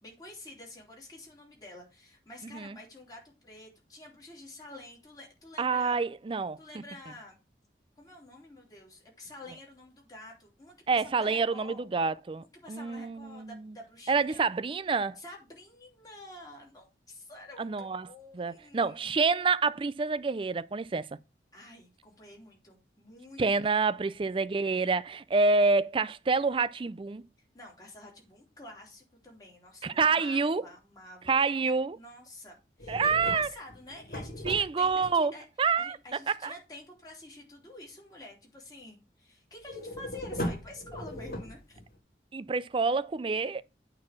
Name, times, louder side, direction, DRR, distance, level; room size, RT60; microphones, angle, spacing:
voice 1, 0.0-6.0 6.6-7.4 8.0-11.8 12.5-14.5 15.2-19.2 21.5-23.9 27.5-31.5 31.9-35.4 35.8-41.8, left 2 dB, 20° left, 3.0 m, -49 dB
voice 2, 2.4-2.8 5.6-6.6 10.9-13.5 14.1-15.2 17.6-18.1 18.3-21.1 23.4-27.2 29.8-30.6 31.3-32.0 32.9-33.5 34.4-35.3 35.6-36.0 36.4-36.5 42.3-43.6, right 4 dB, 30° right, 0.4 m, -27 dB
sound 1, 32.8-35.1 39.6-41.9, equal, 55° left, 2.0 m, -38 dB
8.8 x 4.1 x 5.8 m
head